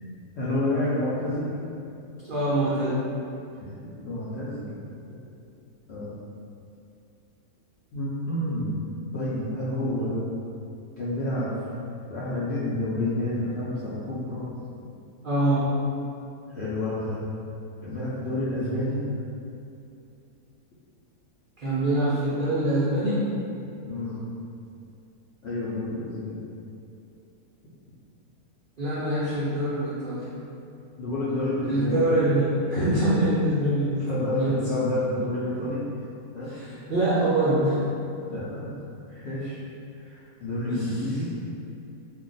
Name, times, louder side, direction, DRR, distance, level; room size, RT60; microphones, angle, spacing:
voice 1, 0.4-1.6 3.6-3.7 4.0-4.7 5.9-6.1 7.9-8.9 9.1-10.2 11.0-11.5 12.1-14.5 16.5-17.2 17.8-19.0 23.9-24.2 25.4-26.4 31.0-32.1 34.0-35.8 36.3-36.5 38.3-38.7 39.1-39.6 40.0-41.3, left 1 dB, 65° left, -10 dB, 0.6 m, -29 dB
voice 2, 2.3-3.0 15.2-15.7 21.6-23.3 28.8-30.2 31.7-34.0 34.3-34.6 36.5-37.8 40.7-40.9, right 1 dB, 65° right, -10 dB, 0.5 m, -24 dB
2.4 x 2.2 x 3.9 m, 2.6 s
omnidirectional pair, 1.7 m